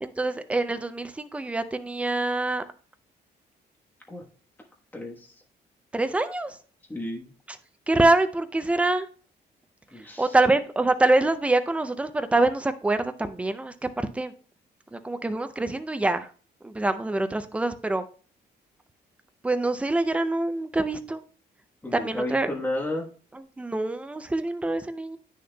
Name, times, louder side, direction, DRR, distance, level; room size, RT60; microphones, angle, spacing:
voice 1, 0.0-2.6 5.9-6.6 7.9-9.1 10.2-14.3 14.9-16.3 16.6-18.0 19.4-21.2 21.9-22.5 23.6-25.2, right 2 dB, 5° right, 0.4 m, -25 dB
voice 2, 4.9-5.3 6.9-7.3 9.9-10.3 21.8-23.1, left 1 dB, 10° left, 1.2 m, -32 dB
9.4 x 6.5 x 2.2 m
cardioid pair, 160°, 18 cm